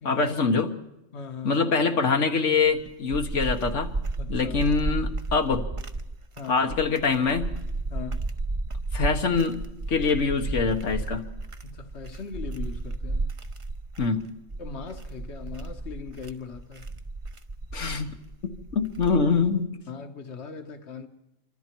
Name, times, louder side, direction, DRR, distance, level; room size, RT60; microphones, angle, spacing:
voice 1, 0.0-0.7 1.4-3.9 4.3-5.7 6.5-7.5 8.9-9.6 9.9-11.3 14.0-14.3 17.7-18.1 18.4-19.7, left 4 dB, 85° left, 1.7 m, -24 dB
voice 2, 1.1-1.6 4.2-4.6 6.3-6.6 7.9-8.3 11.6-13.4 14.6-16.9 19.9-21.1, left 6 dB, 65° left, 1.6 m, -39 dB
sound 1, 2.6-19.5, right 2 dB, 30° right, 0.9 m, -33 dB
26.5 x 24.5 x 4.6 m
omnidirectional pair, 1.2 m